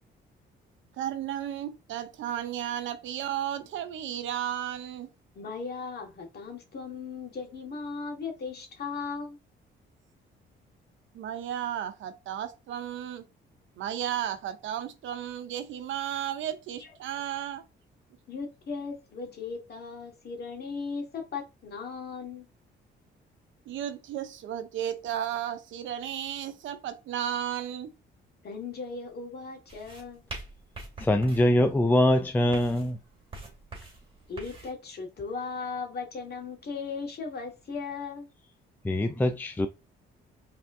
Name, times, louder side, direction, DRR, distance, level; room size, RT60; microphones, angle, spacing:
voice 1, 0.9-5.1 11.1-13.2 13.8-17.6 23.7-27.9, right 10 dB, 75° right, 0.7 m, -34 dB
voice 2, 5.4-9.4 18.3-22.4 28.4-30.2 34.3-38.3, left 4 dB, 55° left, 1.7 m, -37 dB
sound 1, 29.7-34.7, right 2 dB, 30° right, 2.3 m, -45 dB
voice 3, 31.0-33.0 38.8-39.7, left 1 dB, 10° left, 0.4 m, -23 dB
5.1 x 3.5 x 2.6 m
cardioid pair, 90°, 20 cm